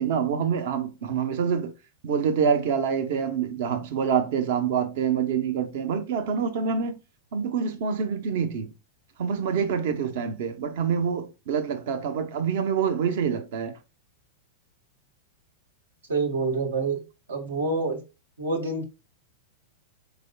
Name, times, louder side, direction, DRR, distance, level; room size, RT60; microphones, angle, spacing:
voice 1, 0.0-1.7 2.0-7.0 7.3-8.7 9.2-13.7, right 7 dB, 65° right, 0.7 m, -26 dB
voice 2, 16.1-17.0 17.3-18.0 18.4-18.8, right 3 dB, 85° right, 1.2 m, -27 dB
4.4 x 3.5 x 2.2 m
hypercardioid pair, 110°, 0 cm